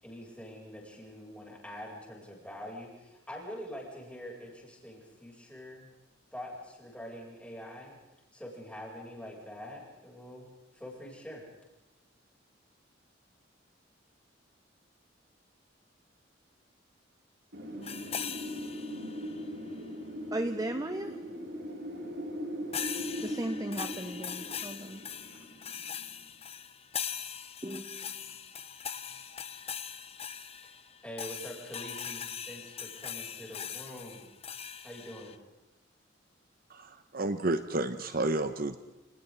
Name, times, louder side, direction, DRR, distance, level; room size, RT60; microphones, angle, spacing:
voice 1, 0.0-5.9 6.3-7.9 8.3-10.5 10.7-11.4 30.6-30.7 31.0-34.3 34.8-35.3, equal, 5° left, -3 dB, 7.9 m, -45 dB
Wind, 17.5-26.2, equal, 70° right, 6.3 m, -40 dB
sound 1, 17.8-19.4 22.7-35.4, left 8 dB, 35° left, 1.0 m, -41 dB
voice 2, 20.3-21.1 23.2-25.0 27.6-28.1, right 1 dB, 20° right, 8 dB, 0.9 m, -36 dB
voice 3, 36.7-38.8, right 2 dB, 50° right, 9 dB, 1.0 m, -31 dB
29.5 x 28.5 x 4.1 m, 1.0 s
head